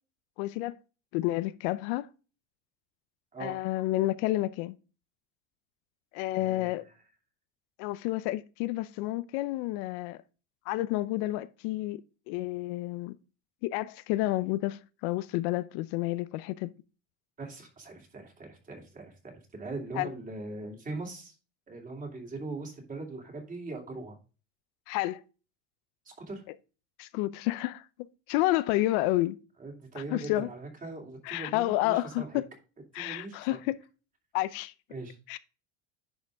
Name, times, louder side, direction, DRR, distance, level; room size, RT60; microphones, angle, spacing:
voice 1, 0.4-0.7 1.1-2.1 3.4-4.7 6.1-6.8 7.8-10.2 10.7-12.0 12.3-13.1 13.6-16.7 20.0-20.1 24.9-25.2 27.0-27.8 28.3-29.4 30.1-30.5 31.3-32.4 32.9-33.8 34.3-34.7 35.3-35.4, left 17 dB, 75° left, 0.6 m, -30 dB
voice 2, 6.3-6.9 17.4-21.3 21.7-24.1 26.2-26.4 29.6-32.4 32.9-33.6 34.9-35.2, right 3 dB, 25° right, 2.7 m, -41 dB
10.5 x 5.1 x 3.5 m
cardioid pair, 140°, 34 cm